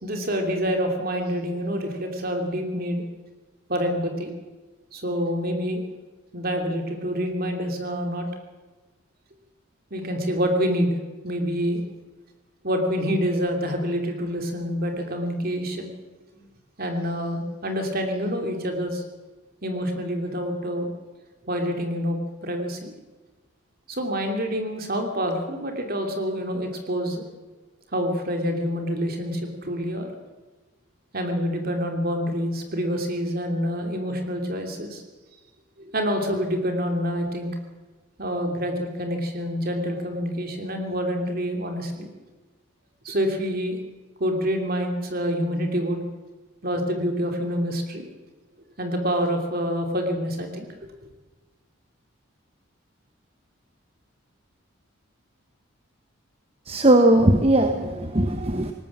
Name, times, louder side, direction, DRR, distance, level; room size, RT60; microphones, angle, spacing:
voice 1, 0.0-3.0 3.7-4.3 4.9-5.8 6.3-8.3 9.9-11.0 11.2-11.8 12.6-15.9 16.3-16.4 16.8-19.0 19.6-20.9 21.4-22.9 23.9-27.2 27.9-30.1 31.1-35.0 35.8-37.5 38.2-42.1 43.0-43.8 44.2-46.0 46.6-48.1 48.8-50.7, equal, 45° right, 4 dB, 2.8 m, -27 dB
voice 2, 56.7-58.7, right 1 dB, 30° right, 6 dB, 1.1 m, -19 dB
19.0 x 18.5 x 7.3 m, 1.3 s
head